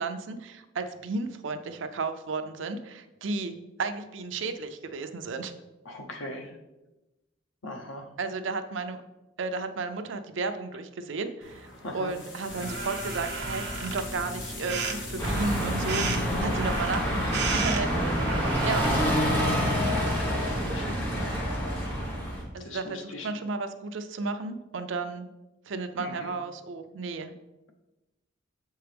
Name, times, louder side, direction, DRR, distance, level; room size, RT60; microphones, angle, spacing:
voice 1, 0.0-5.5 8.2-9.0 9.4-19.2 22.5-25.3 25.7-27.3, right 3 dB, 75° right, 8 dB, 0.5 m, -33 dB
voice 2, 5.9-6.5 7.6-8.1 11.8-12.1 19.8-21.3 22.6-23.3 26.0-26.3, left 1 dB, 85° left, 4 dB, 0.8 m, -40 dB
sound 1, 11.4-17.3, left 3 dB, 70° left, 1.1 m, -43 dB
sound 2, 12.5-20.8, right 3 dB, 55° right, 0.9 m, -35 dB
sound 3, 15.2-22.4, equal, 10° left, 1.3 m, -27 dB
6.7 x 4.5 x 3.4 m, 1.0 s
head